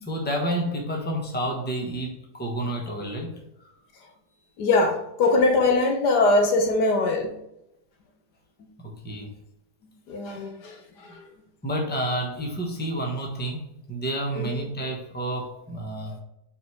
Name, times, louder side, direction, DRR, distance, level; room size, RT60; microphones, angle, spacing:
voice 1, 0.0-3.7 8.8-9.3 11.6-13.6 13.9-16.2, right 1 dB, 5° left, 0 dB, 1.0 m, -30 dB
voice 2, 4.6-7.3 10.1-10.8 14.3-14.6, left 2 dB, 75° left, 4 dB, 1.5 m, -21 dB
4.9 x 4.5 x 4.6 m, 0.82 s
omnidirectional pair, 1.8 m